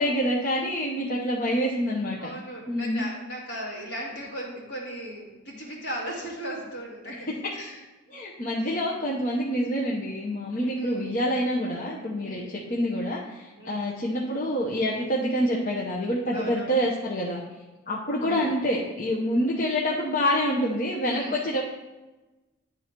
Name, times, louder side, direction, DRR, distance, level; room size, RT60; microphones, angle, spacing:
voice 1, 0.0-2.3 2.7-3.0 7.3-7.6 8.1-12.4 12.7-17.4 17.9-21.6, equal, 45° left, -4 dB, 0.8 m, -27 dB
voice 2, 2.2-7.8 8.6-8.7 10.7-11.1 12.2-12.5 13.6-13.9 16.3-16.8 18.2-18.4 21.0-21.4, equal, 60° left, -4 dB, 2.1 m, -37 dB
10.5 x 3.9 x 4.5 m, 1.1 s
head